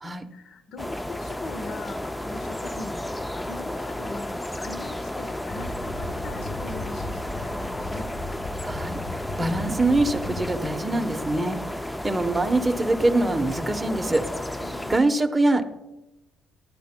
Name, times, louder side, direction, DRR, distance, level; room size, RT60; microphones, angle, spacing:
voice 1, 0.3-8.1 14.6-15.0, left 3 dB, 55° left, 0.9 m, -41 dB
sound 1, 0.8-15.0, left 1 dB, 10° left, 0.4 m, -33 dB
sound 2, 5.5-10.6, left 2 dB, 25° left, 1.4 m, -36 dB
voice 2, 8.6-9.0 9.4-11.6 12.0-14.2 14.9-15.6, right 2 dB, 10° right, 0.9 m, -23 dB
18.5 x 12.0 x 2.2 m
cardioid pair, 125°, 0 cm